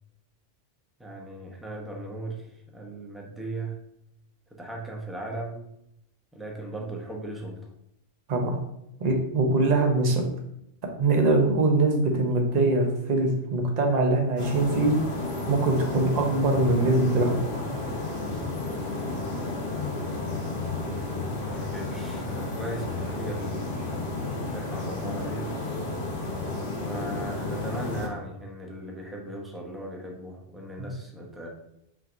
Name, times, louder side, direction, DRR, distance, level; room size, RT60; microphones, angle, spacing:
voice 1, 1.0-3.8 4.5-5.7 6.3-7.7 21.0-25.7 26.7-31.5, right 2 dB, ahead, -1 dB, 0.5 m, -38 dB
voice 2, 9.0-10.2 11.0-14.9 15.5-17.6 30.8-30.9, right 2 dB, 40° right, 2 dB, 0.8 m, -23 dB
sound 1, 14.4-28.1, left 2 dB, 60° left, 1.2 m, -32 dB
5.9 x 3.1 x 2.6 m, 0.80 s
omnidirectional pair, 1.3 m